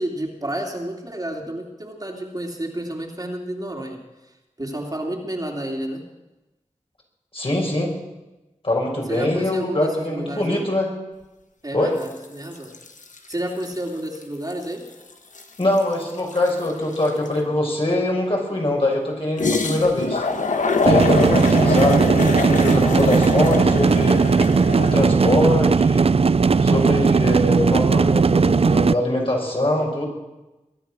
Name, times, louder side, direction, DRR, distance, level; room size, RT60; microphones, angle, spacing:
voice 1, 0.0-6.0 9.1-10.7 11.6-12.7 13.3-14.8 21.6-22.0, right 1 dB, 30° right, 0 dB, 2.9 m, -30 dB
voice 2, 7.3-7.9 8.6-10.9 11.7-11.9 15.6-20.2 20.8-24.2 24.8-26.1 26.6-30.1, left 1 dB, 45° left, -1 dB, 5.8 m, -23 dB
sound 1, 12.0-12.3 12.5-13.8 14.1-14.2 14.5-17.4 19.4-25.0, left 4 dB, 85° left, 1.4 m, -24 dB
sound 2, 20.9-28.9, right 4 dB, 50° right, 0.5 m, -17 dB
22.5 x 10.0 x 6.3 m, 1.0 s
cardioid pair, 45°, 13 cm